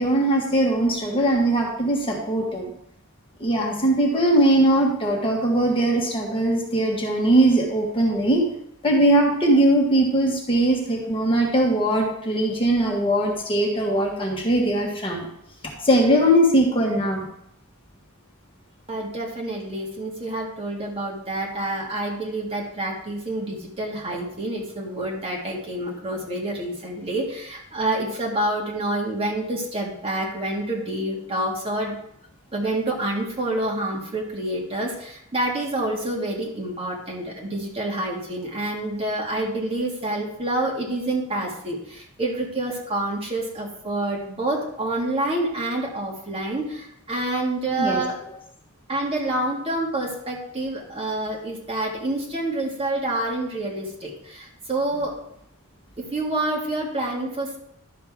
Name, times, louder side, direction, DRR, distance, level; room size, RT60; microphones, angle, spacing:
voice 1, 0.0-2.7 3.4-8.5 8.8-15.3 15.8-17.2 47.8-48.0, right 1 dB, 25° left, -1 dB, 1.4 m, -20 dB
voice 2, 18.9-32.0 32.5-48.2 48.9-55.2 56.0-57.6, right 1 dB, 30° right, -2 dB, 1.9 m, -28 dB
11.5 x 6.6 x 3.6 m, 0.74 s
head